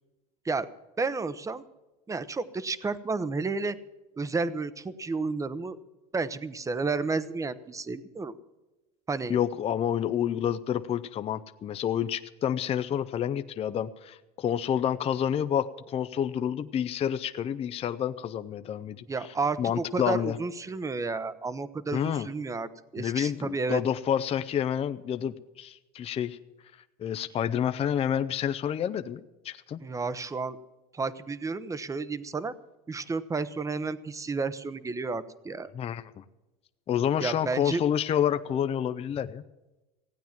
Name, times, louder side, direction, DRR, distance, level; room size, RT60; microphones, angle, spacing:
voice 1, 1.0-1.6 2.1-3.8 4.2-5.8 6.1-8.3 9.1-9.3 19.1-23.8 29.8-30.6 30.9-32.5 32.9-35.7 37.2-37.8, right 4 dB, 15° right, 14 dB, 0.8 m, -31 dB
voice 2, 9.3-19.0 19.6-20.4 21.9-22.3 23.0-26.4 27.0-29.8 35.7-36.2 36.9-39.4, left 9 dB, 30° left, 11 dB, 0.6 m, -29 dB
16.0 x 9.1 x 7.3 m, 1.1 s
supercardioid pair, 110°, 20 cm